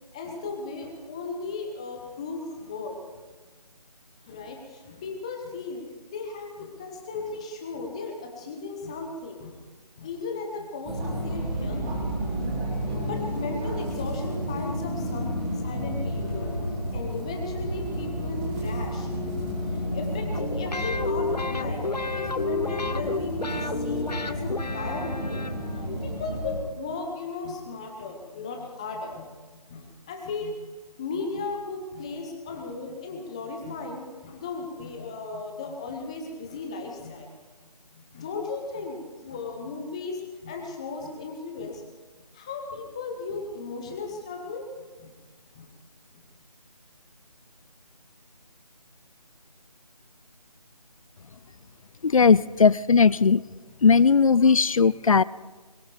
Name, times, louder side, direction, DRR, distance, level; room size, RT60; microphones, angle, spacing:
voice 1, 0.1-3.0 4.2-5.8 6.1-9.6 10.0-12.4 12.9-16.5 16.8-19.2 19.6-30.7 31.0-37.3 37.9-41.8 42.3-44.7 45.0-45.1 45.5-45.7, left 3 dB, 10° left, 2 dB, 0.8 m, -36 dB
sound 1, 10.8-26.6, equal, 10° right, 1.7 m, -31 dB
sound 2, 20.3-26.0, left 3 dB, 85° left, 1.0 m, -31 dB
voice 2, 52.0-53.4 53.8-55.2, left 5 dB, 55° left, 21 dB, 0.4 m, -18 dB
22.0 x 15.5 x 3.4 m, 1.3 s
figure-of-eight pair, 165°, 20 cm